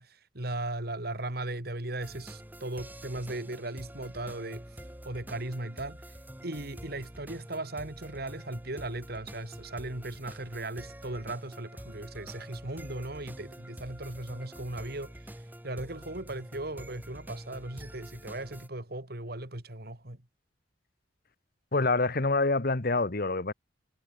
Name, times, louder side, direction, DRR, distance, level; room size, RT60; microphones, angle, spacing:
voice 1, 0.0-4.6 5.0-6.0 6.4-20.2, right 2 dB, 60° right, 3.1 m, -37 dB
sound 1, 2.0-18.7, right 1 dB, 10° right, 1.8 m, -46 dB
voice 2, 21.7-23.5, left 3 dB, 55° left, 1.4 m, -26 dB
head